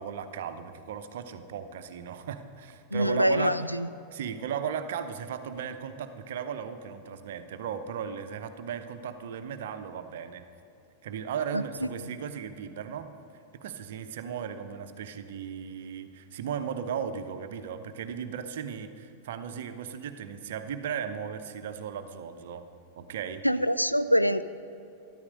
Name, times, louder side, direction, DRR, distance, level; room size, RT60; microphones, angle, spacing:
voice 1, 0.0-3.6 4.1-10.4 11.0-13.1 13.5-22.6 23.0-23.4, right 7 dB, 55° right, 9 dB, 0.8 m, -36 dB
voice 2, 2.9-3.9 11.5-11.6 23.4-24.4, equal, 90° left, 13 dB, 0.3 m, -24 dB
13.0 x 12.5 x 5.3 m, 2.7 s
figure-of-eight pair, 90°, 0 cm